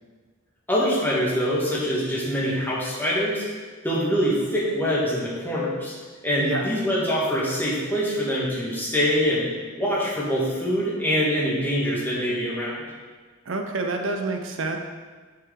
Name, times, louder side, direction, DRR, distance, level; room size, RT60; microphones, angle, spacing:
voice 1, 0.7-3.4 3.8-5.9 6.2-9.5 9.8-12.8, equal, 10° left, -6 dB, 1.7 m, -24 dB
voice 2, 13.5-14.8, right 3 dB, 70° right, 4 dB, 0.6 m, -28 dB
9.6 x 4.7 x 3.7 m, 1.4 s
head